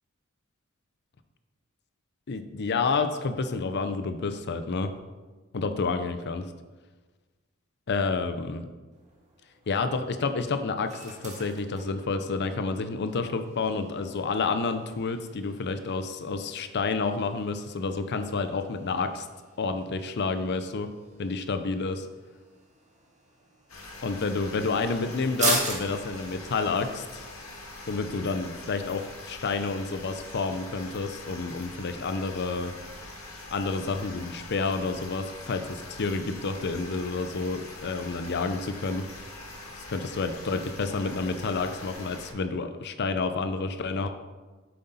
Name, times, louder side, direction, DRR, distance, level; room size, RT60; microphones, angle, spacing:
voice 1, 2.3-4.9 5.5-6.4 7.9-8.6 9.7-19.3 19.6-20.9 21.2-22.1 24.0-27.2 27.9-32.7 33.5-39.1 39.9-44.1, left 4 dB, 55° left, 9 dB, 0.5 m, -29 dB
sound 1, 8.9-28.5, right 3 dB, 35° right, 1.6 m, -40 dB
sound 2, 23.7-42.3, left 2 dB, 90° left, 1.9 m, -43 dB
7.8 x 7.7 x 4.1 m, 1.3 s
head